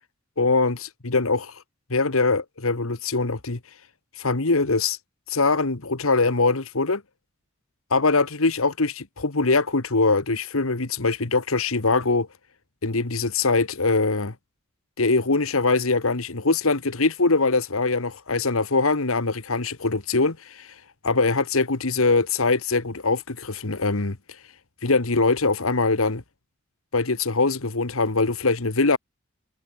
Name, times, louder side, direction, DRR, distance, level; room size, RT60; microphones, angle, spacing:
voice 1, 0.4-1.5 1.9-3.6 4.2-5.0 5.3-7.0 7.9-12.3 12.8-14.3 15.0-20.7 21.0-24.2 24.8-26.2 26.9-29.0, left 3 dB, 75° left, 1.6 m, -22 dB
head